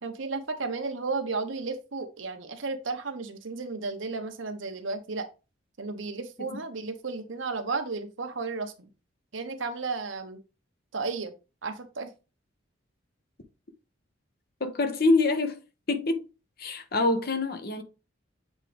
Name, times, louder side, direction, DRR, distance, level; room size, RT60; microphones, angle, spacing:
voice 1, 0.0-5.3 5.8-8.9 9.3-10.4 10.9-11.3 11.6-12.1, right 4 dB, 80° right, 1.0 m, -33 dB
voice 2, 14.6-15.6 15.9-16.2 16.6-17.8, left 3 dB, 50° left, 1.0 m, -25 dB
7.4 x 3.7 x 3.4 m
head